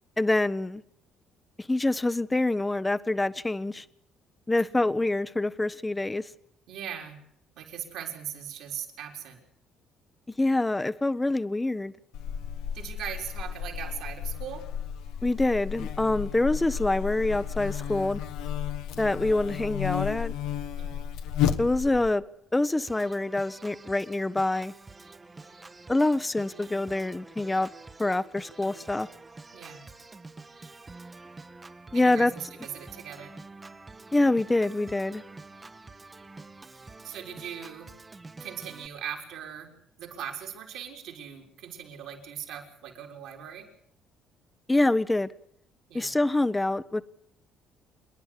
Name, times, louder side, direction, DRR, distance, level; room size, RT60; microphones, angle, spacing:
voice 1, 0.2-0.8 1.6-3.8 4.5-6.3 10.4-11.9 15.2-18.2 19.0-20.3 21.6-22.2 22.5-24.7 25.9-27.7 28.0-29.1 31.9-32.3 34.1-35.2 44.7-45.3 45.9-47.0, left 2 dB, 15° left, 16 dB, 1.0 m, -26 dB
voice 2, 4.6-5.1 6.7-7.2 7.6-9.4 12.7-14.6 20.8-21.1 29.5-29.9 31.9-33.3 37.0-37.9 38.4-39.7 40.0-43.7 45.9-46.2, right 9 dB, 75° right, 1 dB, 4.4 m, -40 dB
Buzz, 12.1-22.1, left 9 dB, 75° left, 1.4 m, -33 dB
Organ, 22.9-38.9, right 3 dB, 25° right, 1.2 m, -47 dB
27.5 x 10.5 x 9.8 m, 0.73 s
supercardioid pair, 60°, 0 cm